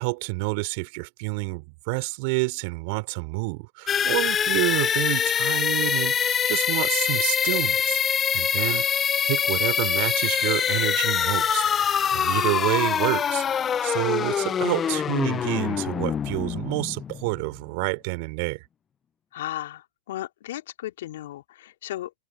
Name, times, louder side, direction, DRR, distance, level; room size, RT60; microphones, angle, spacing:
voice 1, 0.0-8.9 9.2-11.6 12.1-18.6, right 30 dB, 55° right, 4.1 m, -28 dB
sound 1, 3.9-17.6, left 8 dB, 25° left, 0.4 m, -24 dB
voice 2, 8.6-8.9 12.2-12.6 19.3-22.1, left 14 dB, 65° left, 3.5 m, -36 dB
hypercardioid pair, 95°, 0 cm